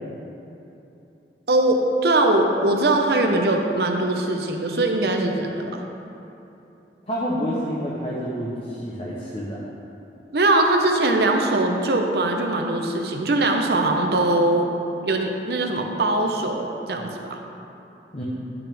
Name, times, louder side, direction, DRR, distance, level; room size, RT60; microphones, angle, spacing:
voice 1, 1.5-5.8 10.3-14.7 15.0-17.4, right 2 dB, 65° right, 3 dB, 0.8 m, -21 dB
voice 2, 7.1-9.6 18.1-18.2, equal, 35° left, -6 dB, 0.8 m, -28 dB
10.5 x 6.0 x 3.5 m, 2.9 s
head